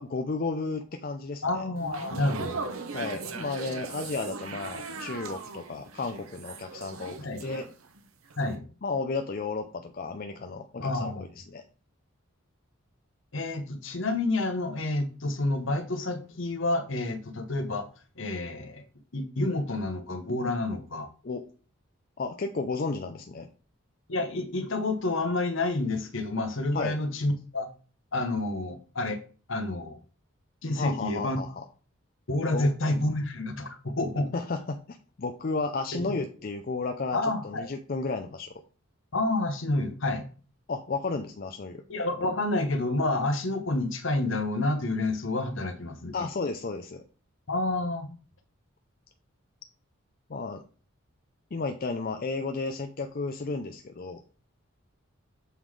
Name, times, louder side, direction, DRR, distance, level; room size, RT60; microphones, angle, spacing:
voice 1, 0.0-1.6 2.9-7.7 8.8-11.1 11.5-11.6 21.2-21.4 22.2-23.5 26.7-27.0 30.8-31.6 32.5-32.7 34.3-38.5 40.7-41.8 46.1-47.0 50.3-50.6 51.5-54.2, left 3 dB, 45° left, 6 dB, 0.5 m, -33 dB
voice 2, 1.4-2.6 7.2-7.4 8.4-8.6 10.8-11.3 13.3-17.9 18.2-18.8 19.1-21.1 24.1-27.7 28.1-29.2 29.5-30.0 30.6-31.4 32.3-34.3 35.9-36.0 37.1-37.7 39.1-40.3 41.9-46.3 47.5-48.1, left 2 dB, 65° left, 8 dB, 1.0 m, -29 dB
sound 1, 1.8-8.0 8.3-8.6, right 4 dB, 85° right, 0.9 m, -39 dB
6.9 x 3.8 x 4.7 m, 0.39 s
head